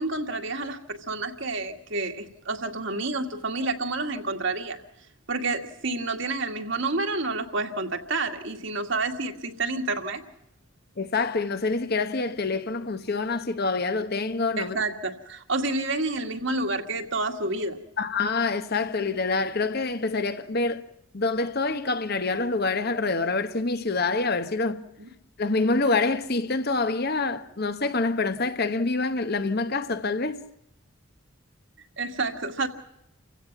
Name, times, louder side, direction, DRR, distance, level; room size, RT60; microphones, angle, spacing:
voice 1, 0.0-4.8 5.3-10.2 14.6-17.8 25.0-25.1 32.0-32.7, right 3 dB, 55° right, 2.0 m, -29 dB
voice 2, 11.0-14.8 18.0-20.8 21.1-24.8 25.4-30.4, left 3 dB, 45° left, 1.0 m, -26 dB
29.5 x 16.5 x 5.9 m
head